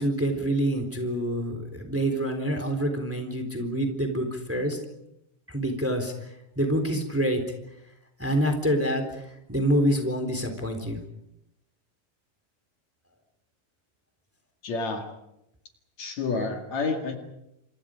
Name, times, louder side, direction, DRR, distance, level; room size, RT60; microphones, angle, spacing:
voice 1, 0.0-4.8 5.5-7.4 8.2-11.0, right 1 dB, 5° right, 6 dB, 3.4 m, -27 dB
voice 2, 14.6-15.0 16.0-17.2, left 4 dB, 55° left, 3 dB, 3.3 m, -29 dB
29.0 x 27.5 x 5.2 m, 0.86 s
omnidirectional pair, 3.9 m